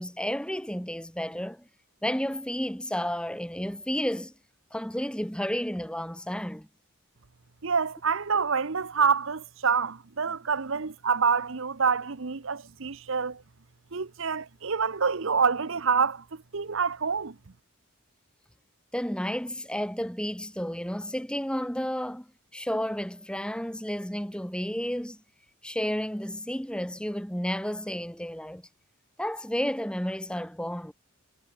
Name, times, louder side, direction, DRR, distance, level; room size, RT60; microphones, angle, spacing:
voice 1, 0.0-1.7 2.0-4.3 4.7-6.7 18.9-22.3 22.5-25.2 25.6-28.6 29.2-30.9, equal, 5° left, 2.1 m, -31 dB
voice 2, 7.6-13.4 13.9-16.2 16.5-17.3, right 5 dB, 60° right, 0.8 m, -27 dB
head